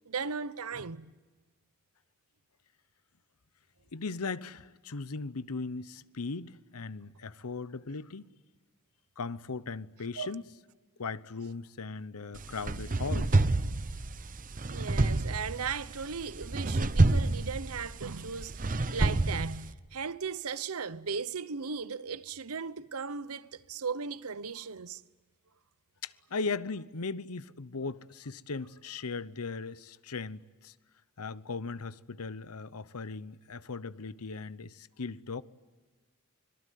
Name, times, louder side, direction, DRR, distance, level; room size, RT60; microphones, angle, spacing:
voice 1, 0.1-1.1 10.2-10.3 14.7-25.0, right 5 dB, 80° right, 0.9 m, -37 dB
voice 2, 3.9-8.3 9.2-10.4 11.0-13.4 14.7-14.9 26.0-30.7 31.2-35.4, left 4 dB, 85° left, 0.9 m, -38 dB
sound 1, 12.4-19.7, right 2 dB, 40° right, 0.8 m, -29 dB
25.0 x 22.5 x 9.3 m
head